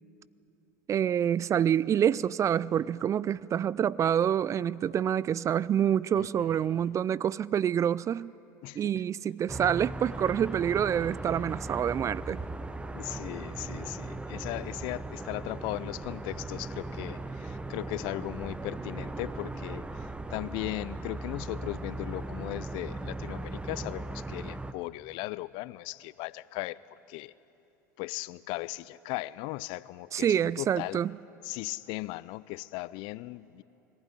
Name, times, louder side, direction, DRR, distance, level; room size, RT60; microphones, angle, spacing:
voice 1, 0.9-8.3 8.7-12.4 30.1-31.1, right 9 dB, 35° right, 0.4 m, -27 dB
voice 2, 6.2-6.9 8.6-9.0 12.9-19.9 20.3-26.8 27.1-27.3 28.0-31.0 31.4-33.6, left 19 dB, 60° left, 0.5 m, -37 dB
sound 1, 9.5-24.7, right 2 dB, 10° right, 1.0 m, -38 dB
22.0 x 15.5 x 10.0 m
hypercardioid pair, 75°, 9 cm